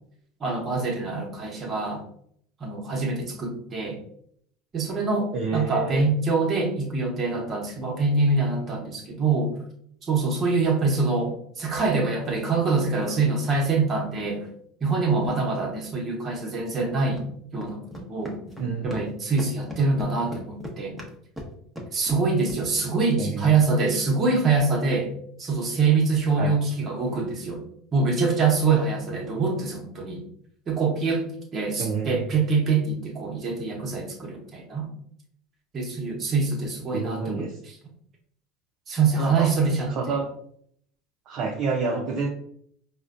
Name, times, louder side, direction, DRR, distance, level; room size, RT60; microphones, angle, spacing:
voice 1, 0.4-2.0 2.6-4.0 4.7-9.5 10.0-14.5 14.8-17.3 17.5-17.8 18.1-18.4 18.8-21.0 21.9-25.1 25.4-27.6 27.9-30.2 30.7-31.3 31.5-34.9 35.7-37.7 38.9-40.2, right 4 dB, 35° right, 0 dB, 1.0 m, -24 dB
voice 2, 5.3-6.0 18.6-19.0 23.2-23.6 26.4-26.5 31.8-32.2 36.9-37.6 39.2-39.5 39.9-40.3 41.3-42.3, right 4 dB, 50° right, 1 dB, 0.5 m, -28 dB
sound 1, 13.7-13.8 15.2-15.3 16.6-16.7 17.1-17.3 17.6-19.1 19.4-22.6, equal, 5° right, 0.9 m, -38 dB
4.8 x 2.2 x 2.5 m, 0.67 s
hypercardioid pair, 75°, 0 cm